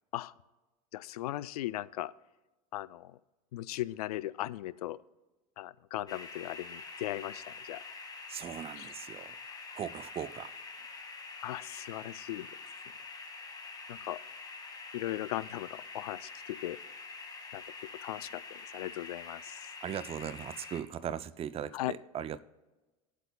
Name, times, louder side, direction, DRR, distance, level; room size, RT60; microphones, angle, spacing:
voice 1, 0.9-2.1 2.7-3.2 3.5-5.0 5.6-7.8 8.8-8.9 11.4-12.5 13.9-14.2 14.9-16.8 17.5-17.6 18.0-19.6 21.7-21.9, left 15 dB, 85° left, 0.4 m, -38 dB
sound 1, 6.1-20.8, left 4 dB, 20° left, 1.9 m, -46 dB
voice 2, 8.3-9.3 9.8-10.5 19.8-22.4, right 9 dB, 30° right, 0.5 m, -39 dB
20.5 x 8.2 x 2.3 m
hypercardioid pair, 90°, 19 cm